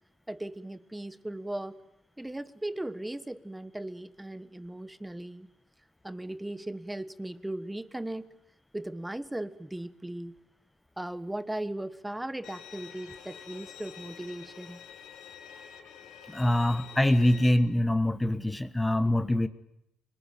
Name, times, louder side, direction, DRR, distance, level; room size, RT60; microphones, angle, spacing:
voice 1, 0.3-1.8 2.2-5.5 6.0-8.3 8.7-10.3 11.0-14.8, right 1 dB, 10° right, 14 dB, 1.3 m, -37 dB
Bowed string instrument, 12.4-17.5, left 8 dB, 70° left, 2.4 m, -47 dB
voice 2, 16.3-19.5, left 1 dB, 10° left, 12 dB, 1.3 m, -24 dB
25.0 x 20.5 x 9.1 m, 0.82 s
supercardioid pair, 80°, 0 cm